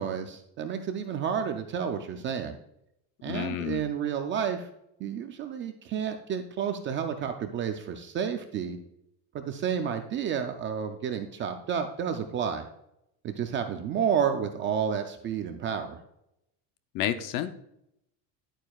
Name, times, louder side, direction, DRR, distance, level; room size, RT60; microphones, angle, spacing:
voice 1, 0.0-2.6 3.2-4.7 5.0-8.8 9.3-12.7 13.2-16.0, right 7 dB, 30° right, 6 dB, 0.3 m, -30 dB
voice 2, 3.3-3.9 16.9-17.5, left 11 dB, 50° left, 11 dB, 0.6 m, -30 dB
10.5 x 9.0 x 2.3 m, 0.81 s
cardioid pair, 170°, 44 cm